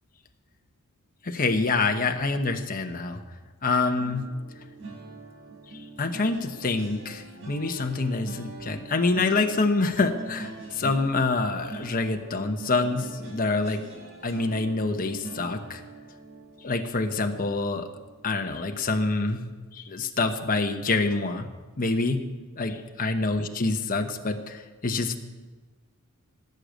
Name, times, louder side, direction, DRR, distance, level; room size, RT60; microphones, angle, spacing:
voice 1, 1.2-3.2 3.6-4.3 6.0-13.8 14.2-15.8 16.6-17.9 18.2-19.4 19.7-21.5 21.8-22.2 22.6-25.2, left 3 dB, 40° left, 4 dB, 1.0 m, -26 dB
sound 1, 3.9-19.1 19.5-19.8 20.0-20.3, right 2 dB, 65° right, 3.4 m, -44 dB
17.0 x 6.7 x 9.0 m, 1.3 s
head